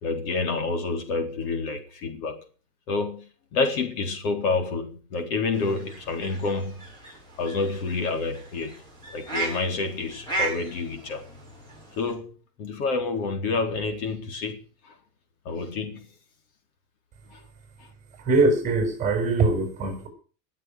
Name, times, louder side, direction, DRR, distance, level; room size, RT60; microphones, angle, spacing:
voice 1, 0.0-2.4 2.9-6.9 7.4-8.8 9.1-11.3 12.0-14.9 15.4-16.1 17.3-17.4, left 3 dB, 60° left, 4.2 m, -28 dB
sound 1, 5.5-12.1, right 2 dB, 10° left, 6.8 m, -36 dB
voice 2, 18.2-20.1, right 3 dB, 15° right, 6.4 m, -22 dB
21.0 x 7.6 x 6.4 m
supercardioid pair, 170°, 49 cm